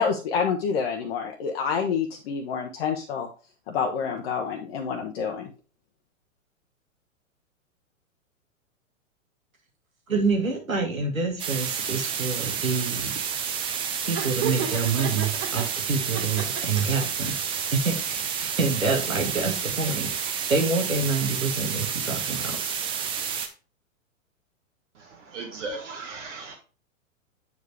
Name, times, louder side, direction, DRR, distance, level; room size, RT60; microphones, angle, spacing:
voice 1, 0.0-3.3 3.7-5.5, left 6 dB, 50° left, 2 dB, 0.9 m, -27 dB
voice 2, 10.1-13.1 14.0-17.3 17.7-22.6, right 4 dB, 90° right, 2 dB, 1.8 m, -27 dB
sound 1, 11.4-23.5, right 7 dB, 15° right, 0.5 m, -30 dB
Laughter, 14.2-15.7 16.1-17.0, right 7 dB, 35° right, 2.0 m, -32 dB
voice 3, 24.9-26.5, right 3 dB, 65° right, 1 dB, 1.4 m, -37 dB
8.1 x 4.6 x 3.3 m, 0.35 s
figure-of-eight pair, 110°, 40 cm